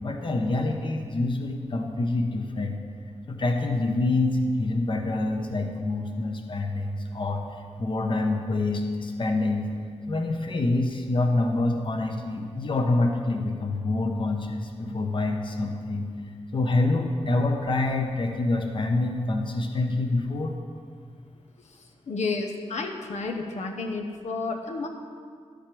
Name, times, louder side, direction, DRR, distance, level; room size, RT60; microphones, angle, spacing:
voice 1, 0.0-2.8 3.3-7.4 7.8-9.7 10.1-16.1 16.5-20.5, left 2 dB, 45° left, 3 dB, 0.9 m, -26 dB
voice 2, 22.1-24.9, left 3 dB, 85° left, 1 dB, 0.9 m, -31 dB
12.0 x 5.1 x 7.5 m, 2.1 s
wide cardioid pair, 130°, 12 cm